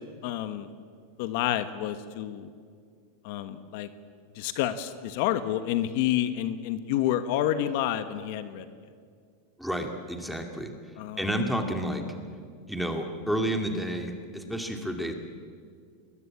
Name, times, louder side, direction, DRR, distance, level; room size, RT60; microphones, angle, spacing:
voice 1, 0.2-0.7 1.2-2.5 3.2-3.9 4.4-8.6 11.0-11.2, left 12 dB, 55° left, 10 dB, 1.4 m, -29 dB
voice 2, 9.6-10.7 11.2-12.0 12.7-15.1, equal, ahead, 3 dB, 2.4 m, -30 dB
29.5 x 21.5 x 8.8 m, 2.1 s
supercardioid pair, 155°, 0 cm